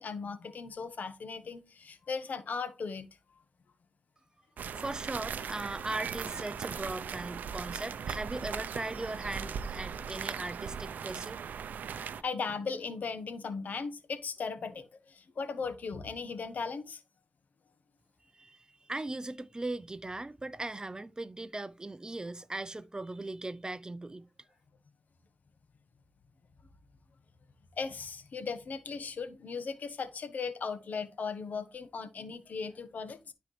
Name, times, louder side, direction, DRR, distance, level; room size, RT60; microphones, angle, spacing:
voice 1, 0.0-3.1 4.6-4.8 12.2-17.0 27.8-33.3, left 5 dB, 70° left, 1.1 m, -37 dB
sound 1, 4.6-12.2, right 7 dB, 85° right, 0.5 m, -39 dB
voice 2, 4.8-11.4 18.3-24.3, right 2 dB, 25° right, 0.5 m, -39 dB
12.5 x 4.4 x 3.2 m
cardioid pair, 55°, 3 cm